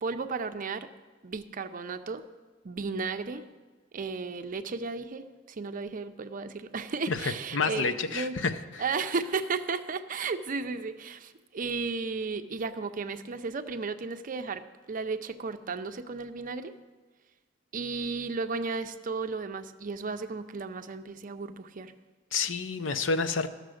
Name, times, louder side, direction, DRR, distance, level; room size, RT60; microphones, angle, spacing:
voice 1, 0.0-0.9 1.2-2.2 2.6-3.4 3.9-8.4 8.8-16.7 17.7-21.9, right 4 dB, 45° right, 9 dB, 0.5 m, -34 dB
voice 2, 7.1-8.5 22.3-23.5, left 4 dB, 75° left, 10 dB, 0.6 m, -29 dB
13.5 x 6.7 x 6.3 m, 1.3 s
head